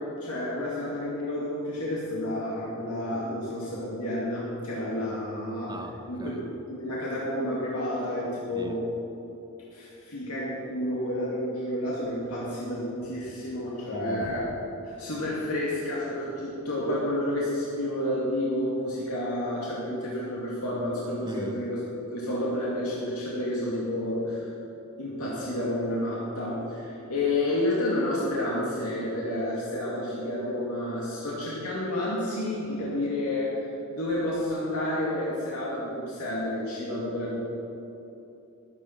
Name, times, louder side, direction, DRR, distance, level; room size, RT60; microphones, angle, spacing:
voice 1, 0.0-5.8 6.1-8.8 9.7-14.5 14.8-21.8 22.1-24.5 25.0-37.4, left 1 dB, 90° left, -6 dB, 2.4 m, -30 dB
voice 2, 5.7-6.4 8.5-8.8 13.9-14.2 21.2-21.6, equal, 20° right, 5 dB, 0.9 m, -39 dB
13.5 x 9.9 x 6.0 m, 2.9 s
head